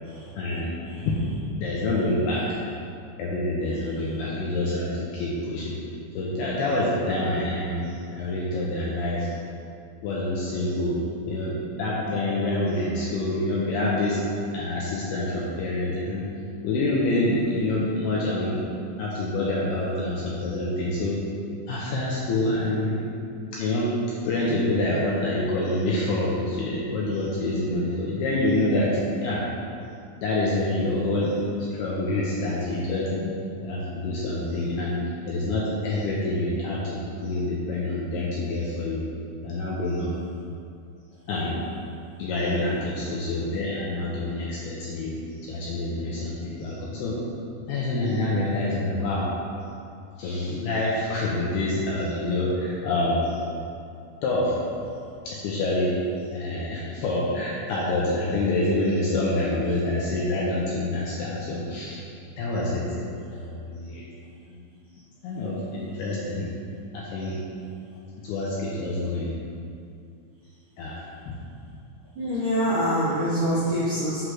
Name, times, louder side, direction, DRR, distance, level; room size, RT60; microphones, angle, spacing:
voice 1, 0.4-0.7 1.0-1.2 1.6-2.4 3.2-5.8 6.2-9.4 10.0-11.0 11.2-14.2 14.5-16.2 16.6-18.7 19.0-21.2 21.7-23.0 23.5-23.9 24.2-28.9 29.2-29.4 30.2-31.3 31.8-33.3 33.6-39.0 39.4-40.1 41.3-41.6 42.2-47.2 47.7-49.3 50.2-53.4 54.2-54.5 55.3-55.9 56.3-62.0 62.4-62.9 63.3-64.1 64.5-64.7 65.2-66.5 66.9-67.4 68.2-69.3 70.8-71.3, left 2 dB, 80° left, -5 dB, 2.4 m, -27 dB
voice 2, 72.2-74.3, equal, 70° right, -11 dB, 1.9 m, -25 dB
7.9 x 3.3 x 6.1 m, 2.5 s
omnidirectional pair, 5.4 m